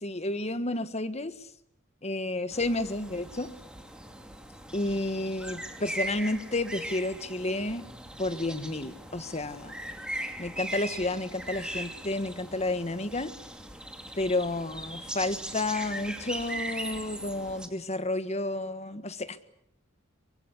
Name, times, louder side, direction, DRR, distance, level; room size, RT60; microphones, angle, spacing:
voice 1, 0.0-1.3 2.0-3.5 4.7-7.8 8.2-9.7 10.4-13.3 14.2-19.4, left 2 dB, 30° left, 11 dB, 1.5 m, -31 dB
sound 1, 2.5-17.7, right 1 dB, 5° right, 2.4 m, -39 dB
24.0 x 23.0 x 8.5 m, 0.75 s
head